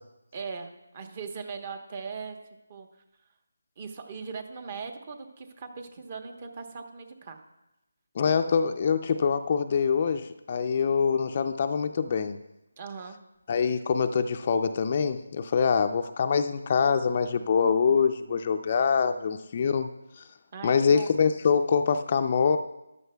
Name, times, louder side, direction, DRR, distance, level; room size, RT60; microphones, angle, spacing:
voice 1, 0.3-2.4 2.7-2.9 3.8-7.4 12.8-13.2 20.5-21.1, right 5 dB, 35° right, 7 dB, 1.1 m, -39 dB
voice 2, 8.2-12.4 13.5-19.9 20.2-20.3 20.6-22.6, left 6 dB, 35° left, 9 dB, 0.4 m, -24 dB
13.5 x 11.0 x 2.3 m, 0.93 s
figure-of-eight pair, 160°, 0 cm